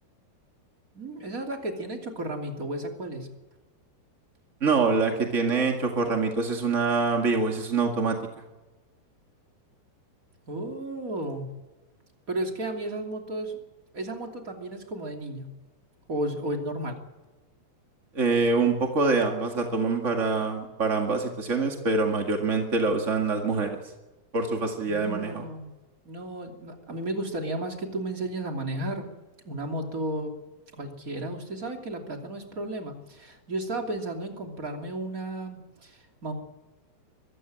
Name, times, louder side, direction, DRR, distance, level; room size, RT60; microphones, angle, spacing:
voice 1, 0.9-3.3 10.5-11.5 12.3-13.6 13.9-15.5 16.1-17.0 24.9-25.7 26.0-29.1 29.4-30.4 30.7-36.3, right 1 dB, 25° right, 2 dB, 2.5 m, -33 dB
voice 2, 4.6-8.2 18.1-23.8 24.3-25.4, right 4 dB, 50° right, 3 dB, 0.8 m, -25 dB
24.0 x 14.5 x 8.9 m, 1.1 s
omnidirectional pair, 5.0 m